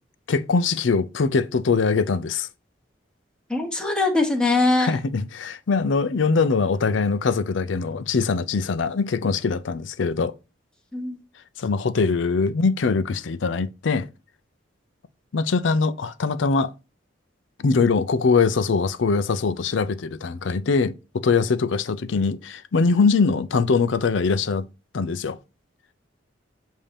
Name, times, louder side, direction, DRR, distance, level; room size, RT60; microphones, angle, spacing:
voice 1, 0.3-2.5 4.8-10.3 11.6-14.1 15.3-16.7 17.6-24.7 24.9-25.4, left 4 dB, 70° left, 0.5 m, -22 dB
voice 2, 3.5-4.9 10.9-11.2, left 2 dB, 5° left, 1.1 m, -21 dB
7.3 x 2.7 x 5.0 m
head